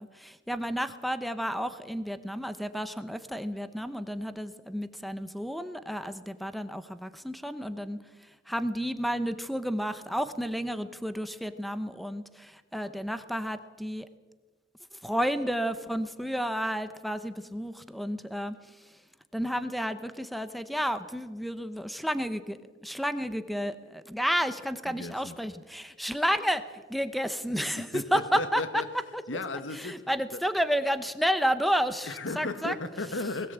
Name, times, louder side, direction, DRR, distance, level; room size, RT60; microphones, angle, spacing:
voice 1, 0.0-8.0 8.5-14.1 15.0-18.5 19.3-28.8 29.8-32.7, equal, ahead, 0.8 m, -31 dB
voice 2, 24.8-25.4 27.8-28.8 29.3-30.1 32.0-33.5, left 2 dB, 85° left, 1.5 m, -35 dB
19.5 x 17.5 x 8.1 m
head